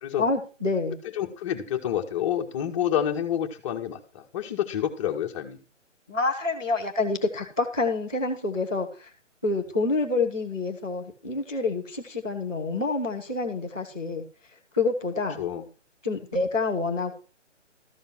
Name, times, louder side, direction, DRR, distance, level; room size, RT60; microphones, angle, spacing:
voice 1, 0.2-1.0 6.1-9.1 9.4-14.2 14.7-15.4 16.0-17.2, left 3 dB, 5° left, -9 dB, 0.5 m, -27 dB
voice 2, 1.2-5.6 15.4-15.7, left 10 dB, 25° left, 2 dB, 1.7 m, -28 dB
14.0 x 5.4 x 7.2 m, 0.35 s
hypercardioid pair, 155°, 37 cm